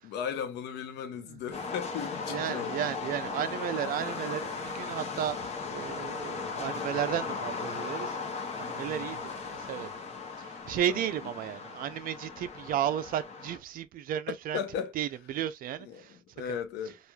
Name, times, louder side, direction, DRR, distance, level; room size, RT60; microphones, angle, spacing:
voice 1, 0.0-2.9 8.9-9.2 10.9-11.0 14.3-14.9 15.8-17.0, left 7 dB, 80° left, 0.7 m, -36 dB
sound 1, 1.5-13.6, left 4 dB, 40° left, 0.8 m, -37 dB
voice 2, 2.3-8.2 8.6-9.9 10.4-14.6 14.9-16.2, right 10 dB, 60° right, 0.4 m, -34 dB
3.0 x 2.4 x 2.2 m
cardioid pair, 110°, 17 cm